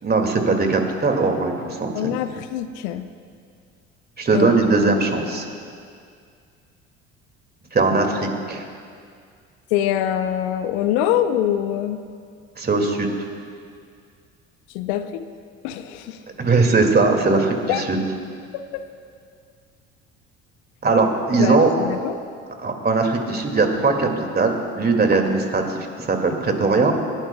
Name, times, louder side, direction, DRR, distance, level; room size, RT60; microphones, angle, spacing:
voice 1, 0.0-2.2 4.2-5.4 7.7-8.6 12.6-13.1 16.4-18.0 20.8-21.7 22.6-26.9, right 3 dB, 30° right, 3 dB, 2.3 m, -20 dB
voice 2, 2.0-3.1 4.3-4.5 9.7-12.0 14.7-15.2 15.6-16.2 17.7-17.8 18.5-18.8 21.4-22.2, left 11 dB, 70° left, 10 dB, 0.7 m, -24 dB
29.0 x 11.5 x 2.3 m, 2.2 s
hypercardioid pair, 60°, 35 cm